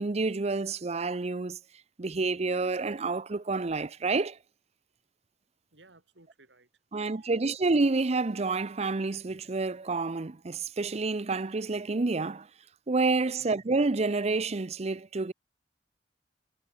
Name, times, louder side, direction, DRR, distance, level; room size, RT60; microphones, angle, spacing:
voice 1, 0.0-1.6 2.0-4.4 6.9-12.5 12.9-15.3, right 3 dB, 35° right, 0.6 m, -29 dB
voice 2, 5.7-7.4 13.4-13.7, right 2 dB, 90° right, 3.6 m, -60 dB
head